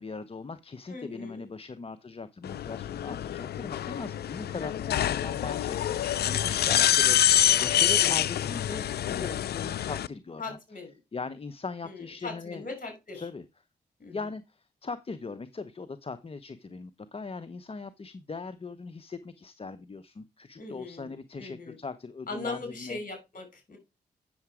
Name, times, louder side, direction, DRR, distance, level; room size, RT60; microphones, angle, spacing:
voice 1, 0.0-7.2 7.6-10.6 11.1-12.6 13.2-13.4 14.1-23.0, left 4 dB, 35° left, 0.8 m, -39 dB
voice 2, 0.9-1.5 10.4-10.9 11.8-13.3 14.0-14.3 20.6-21.8 22.3-23.8, left 3 dB, 50° left, 5.5 m, -40 dB
sound 1, 2.4-10.1, left 11 dB, 70° left, 0.5 m, -26 dB
8.6 x 6.8 x 4.9 m
cardioid pair, 60°, 17 cm